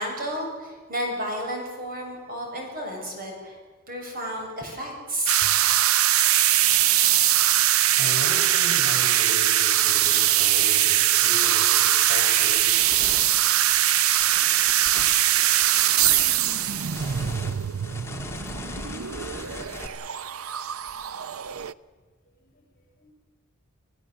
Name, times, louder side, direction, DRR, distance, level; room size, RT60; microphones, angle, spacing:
voice 1, 0.0-3.5 3.9-5.5, equal, 45° right, 1 dB, 6.6 m, -32 dB
sound 1, 5.3-21.7, right 12 dB, 85° right, 0.6 m, -22 dB
voice 2, 8.0-12.7 14.2-14.3 22.4-22.5 23.0-23.1, equal, 40° left, 3 dB, 6.5 m, -37 dB
sound 2, 11.0-11.2 11.7-19.9, left 2 dB, 15° left, 2.0 m, -40 dB
27.0 x 16.5 x 7.9 m, 1.5 s
head